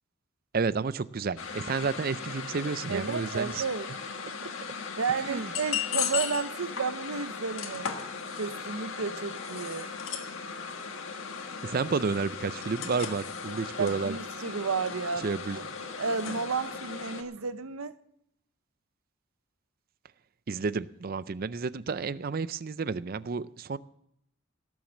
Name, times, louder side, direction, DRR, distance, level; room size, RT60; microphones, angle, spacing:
voice 1, 0.5-3.6 5.2-5.5 11.6-14.2 15.2-15.7 20.5-23.8, right 4 dB, 45° right, 0.4 m, -31 dB
sound 1, 1.4-17.2, left 6 dB, 75° left, 1.6 m, -37 dB
voice 2, 2.9-3.9 5.0-8.1 8.4-9.9 13.8-15.4 16.0-18.0, right 5 dB, 90° right, 0.8 m, -32 dB
18.0 x 7.3 x 7.2 m
head